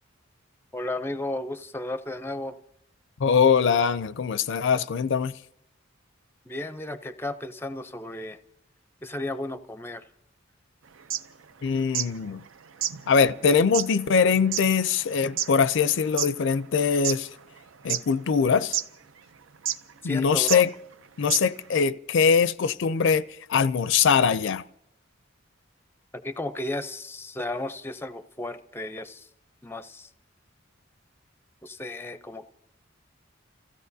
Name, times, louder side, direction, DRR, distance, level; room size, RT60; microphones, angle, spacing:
voice 1, 0.7-2.6 6.5-8.4 9.0-10.1 20.0-20.7 26.2-29.3 29.6-30.1 31.6-32.5, left 1 dB, 10° left, 0.5 m, -34 dB
voice 2, 3.2-5.3 11.6-12.4 13.1-17.3 17.8-18.8 20.0-20.7 21.2-23.2 23.5-24.6, left 6 dB, 65° left, 0.4 m, -22 dB
sound 1, 11.0-12.2 12.4-12.5 12.8-16.4 16.8-17.6 17.9-18.4 18.7-18.9 19.6-19.9 20.5-20.6 20.9-21.0 21.3-21.7, right 10 dB, 90° right, 0.6 m, -30 dB
29.5 x 15.5 x 2.7 m
head